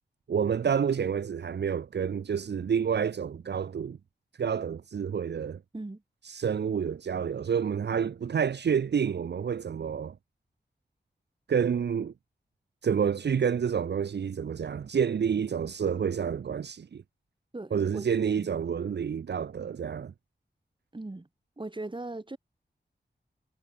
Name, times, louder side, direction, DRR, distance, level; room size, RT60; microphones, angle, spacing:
voice 1, 0.3-4.0 4.4-5.6 6.2-10.2 11.5-12.1 12.8-17.0 17.7-20.1, right 7 dB, 70° right, 0.5 m, -29 dB
voice 2, 17.5-18.1 18.3-18.5 20.9-21.3 21.6-22.4, right 2 dB, 25° right, 2.1 m, -39 dB
wide cardioid pair, 85°, 19 cm